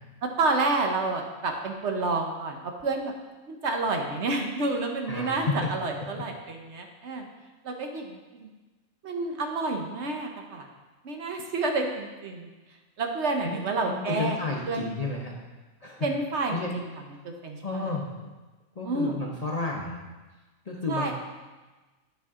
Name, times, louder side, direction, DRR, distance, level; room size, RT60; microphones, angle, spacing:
voice 1, 0.4-3.1 3.5-7.3 7.6-8.5 9.0-10.7 11.0-12.5 13.0-14.4 14.7-14.9 16.0-17.9 18.8-19.2 20.9-21.1, right 3 dB, 60° right, 3 dB, 1.1 m, -29 dB
voice 2, 5.1-5.7 6.1-6.2 13.4-13.6 13.9-15.3 15.8-16.1 16.5-16.7 17.6-18.3 18.8-20.0 20.7-21.1, left 3 dB, 35° left, -2 dB, 0.7 m, -31 dB
10.0 x 5.7 x 3.6 m, 1.2 s
omnidirectional pair, 1.4 m